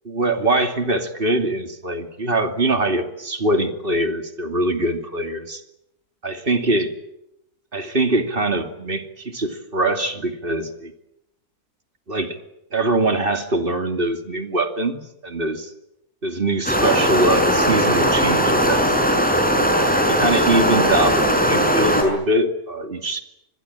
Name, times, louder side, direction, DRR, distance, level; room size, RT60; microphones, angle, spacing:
voice 1, 0.0-5.6 6.2-6.9 7.7-10.9 12.1-12.4 12.7-15.7 16.2-18.8 20.1-23.2, right 2 dB, 35° right, 6 dB, 2.8 m, -23 dB
sound 1, 16.7-22.0, equal, 5° left, 6.2 m, -18 dB
26.5 x 21.5 x 9.0 m, 0.82 s
omnidirectional pair, 1.7 m